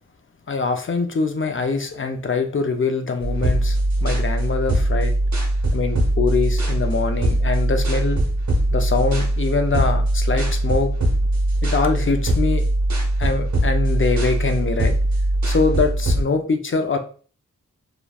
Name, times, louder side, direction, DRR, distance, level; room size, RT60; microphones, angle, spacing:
voice 1, 0.5-5.1 5.7-8.2 8.7-10.9 11.6-12.6 13.2-14.9 15.4-17.0, left 4 dB, 40° left, 6 dB, 0.5 m, -23 dB
sound 1, 3.2-16.2, right 1 dB, 60° right, 0.9 m, -21 dB
3.3 x 2.2 x 2.3 m, 0.41 s
wide cardioid pair, 65°, 32 cm